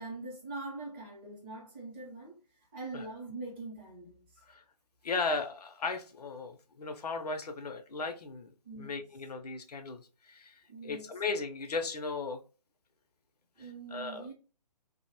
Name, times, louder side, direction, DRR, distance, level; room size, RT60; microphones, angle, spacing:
voice 1, 0.0-2.4 2.7-4.2 8.6-9.0 10.7-11.1 13.6-14.3, right 2 dB, 10° right, 0.5 m, -43 dB
voice 2, 5.0-8.5 8.8-12.4 13.6-14.3, left 4 dB, 70° left, 0.4 m, -36 dB
2.4 x 2.0 x 2.7 m
figure-of-eight pair, 145°, 21 cm